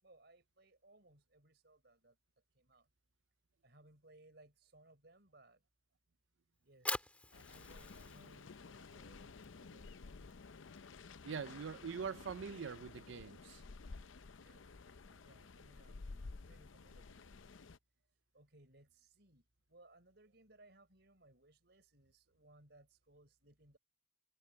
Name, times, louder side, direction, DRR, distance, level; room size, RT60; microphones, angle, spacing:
voice 1, 0.0-2.2 2.6-2.9 3.6-5.6 6.6-10.4 14.4-17.4 18.3-19.4 19.7-23.8, right 2 dB, 60° right, 5.5 m, -65 dB
Fire, 6.6-12.8, left 2 dB, 5° left, 2.6 m, -48 dB
sound 1, 7.3-17.8, left 4 dB, 90° left, 0.7 m, -53 dB
voice 2, 11.2-13.6, right 6 dB, 80° right, 0.5 m, -43 dB
head